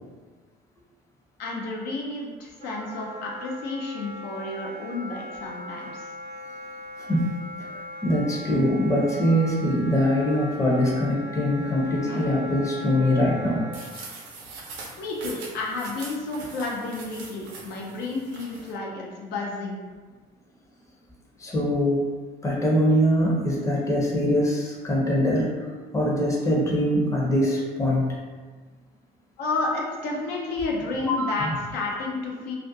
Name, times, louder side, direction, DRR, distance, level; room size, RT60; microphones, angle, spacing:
voice 1, 1.4-6.1 15.0-19.8 29.4-32.5, left 3 dB, 75° left, -2 dB, 0.5 m, -31 dB
Wind instrument woodwind instrument, 2.6-13.9, left 1 dB, 50° right, 0.7 m, -39 dB
voice 2, 7.0-13.6 21.4-22.1 22.4-25.5 25.9-28.2 31.0-31.6, equal, 20° left, -3 dB, 0.6 m, -23 dB
sound 1, 13.7-18.7, right 3 dB, 90° right, 0.6 m, -42 dB
2.4 x 2.1 x 2.6 m, 1.4 s
cardioid pair, 110°, 17 cm